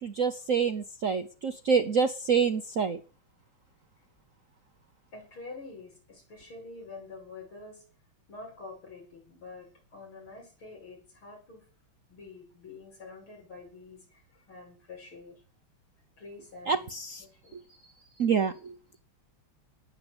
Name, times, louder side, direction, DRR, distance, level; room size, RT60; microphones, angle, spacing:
voice 1, 0.0-3.0 16.7-17.2 17.5-17.6 18.2-19.0, right 6 dB, 50° right, 8 dB, 1.0 m, -27 dB
voice 2, 5.1-7.8 8.3-11.7 12.1-15.4 16.2-18.3, left 3 dB, 70° left, 0 dB, 8.3 m, -47 dB
19.5 x 8.3 x 7.9 m, 0.38 s
omnidirectional pair, 2.4 m